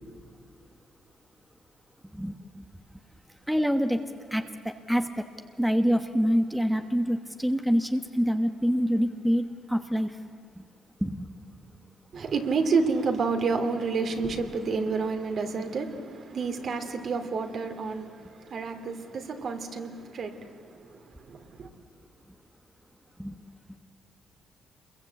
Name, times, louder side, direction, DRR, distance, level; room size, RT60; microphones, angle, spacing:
voice 1, 2.1-2.6 3.5-4.0 4.3-5.2 5.6-10.2 10.6-10.7 11.0-11.3 23.2-23.4, equal, 5° right, 1.2 m, -26 dB
voice 2, 12.1-21.7, right 4 dB, 55° right, 2.8 m, -30 dB
27.5 x 22.5 x 8.4 m
cardioid pair, 90°, 0 cm